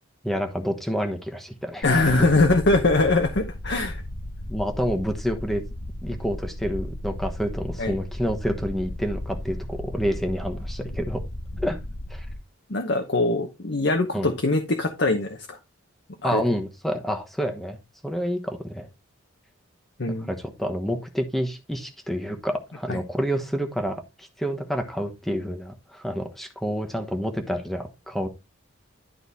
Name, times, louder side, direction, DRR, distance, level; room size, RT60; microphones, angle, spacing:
voice 1, 0.2-1.8 2.2-2.3 4.5-5.6 6.0-11.2 11.6-11.8 12.1-12.3 14.1-14.3 16.2-18.9 20.3-28.3, equal, ahead, 1.1 m, -28 dB
sound 1, 1.8-12.3, left 1 dB, 80° left, 2.3 m, -35 dB
voice 2, 1.8-4.0 7.8-8.0 12.7-15.6 16.2-16.4 20.0-20.3 22.9-23.0, left 2 dB, 55° left, 0.9 m, -22 dB
11.5 x 4.0 x 4.1 m
head